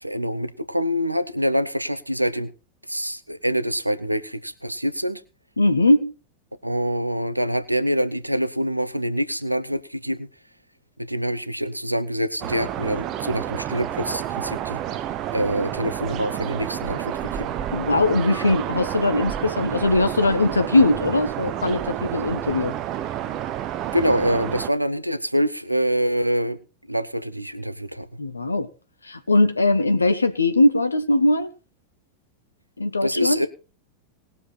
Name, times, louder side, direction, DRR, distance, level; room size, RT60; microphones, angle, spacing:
voice 1, 0.0-2.5 2.9-5.2 6.6-10.3 11.1-14.8 15.3-17.5 23.9-26.6 26.9-28.1 33.0-33.5, equal, 90° right, 0.9 m, -25 dB
voice 2, 5.6-6.1 17.7-22.7 28.2-28.7 29.1-31.5 32.8-33.4, left 2 dB, 80° left, 1.4 m, -20 dB
sound 1, 12.4-24.7, right 11 dB, 35° right, 0.9 m, -30 dB
19.5 x 7.0 x 4.2 m
figure-of-eight pair, 90°, 0 cm